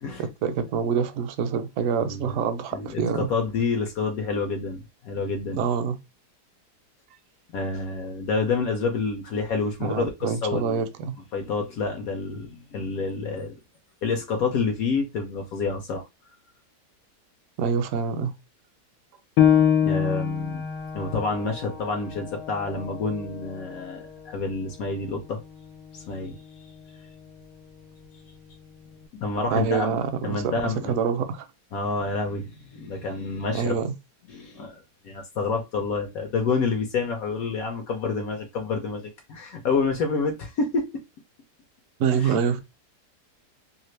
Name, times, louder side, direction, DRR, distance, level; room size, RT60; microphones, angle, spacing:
voice 1, 0.2-3.3 5.6-6.0 9.8-11.2 17.6-18.3 29.5-31.5 33.5-33.9 42.0-42.6, right 6 dB, 70° right, 0.8 m, -26 dB
voice 2, 2.0-2.4 2.7-5.6 7.5-10.8 11.3-13.6 14.0-16.1 19.8-20.6 20.9-25.4 25.9-26.4 29.2-30.0 30.2-30.9 31.7-33.7 34.3-39.0 39.3-41.0 42.2-42.4, left 4 dB, 65° left, 1.0 m, -28 dB
Piano, 19.4-24.5 25.0-25.1 25.7-26.2, left 9 dB, 85° left, 1.2 m, -25 dB
2.8 x 2.4 x 3.1 m
omnidirectional pair, 1.8 m